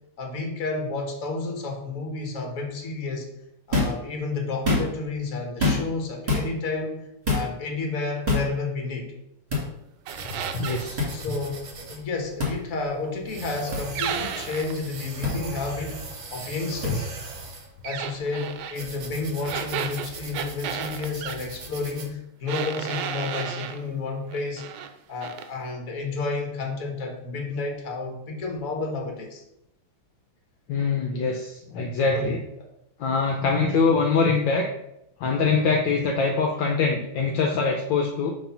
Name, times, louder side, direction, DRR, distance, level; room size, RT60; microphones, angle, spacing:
voice 1, 0.2-3.3 3.7-9.1 11.1-17.1 17.8-24.6 25.1-29.4 32.1-32.4, left 3 dB, 45° left, 2 dB, 1.4 m, -31 dB
sound 1, 3.7-4.0 4.5-5.1 5.6-6.0 6.3-6.5 7.3-7.5 8.3-8.5 9.5-9.6 11.0-11.1 12.4-12.5 13.7-13.8 15.2-15.3 16.8-16.9, left 2 dB, 20° right, 1.9 m, -24 dB
sound 2, 10.1-22.1, right 4 dB, 50° right, 1.3 m, -40 dB
sound 3, 10.1-10.9 14.0-14.8 17.8-18.8 19.4-21.4 22.5-23.8 24.3-24.9 25.2-25.5, right 9 dB, 80° right, 1.3 m, -33 dB
voice 2, 10.5-11.0 11.3-11.4 16.9-17.0 30.7-32.4 33.0-34.7 35.2-38.3, left 4 dB, 70° left, 2 dB, 1.3 m, -23 dB
6.3 x 3.3 x 5.6 m, 0.84 s
omnidirectional pair, 2.3 m